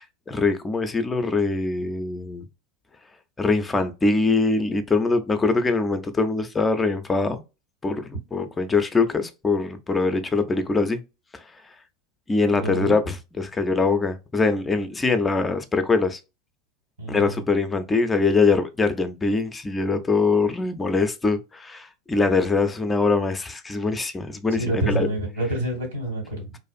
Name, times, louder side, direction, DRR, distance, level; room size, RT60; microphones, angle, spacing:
voice 1, 0.0-2.5 3.4-7.4 7.8-11.0 11.3-11.4 12.3-16.2 17.1-25.1, left 3 dB, 20° left, 0.4 m, -23 dB
voice 2, 12.5-13.0 17.0-17.4 24.5-26.6, right 2 dB, 80° right, 1.6 m, -28 dB
2.5 x 2.4 x 2.4 m
hypercardioid pair, 85°, 0 cm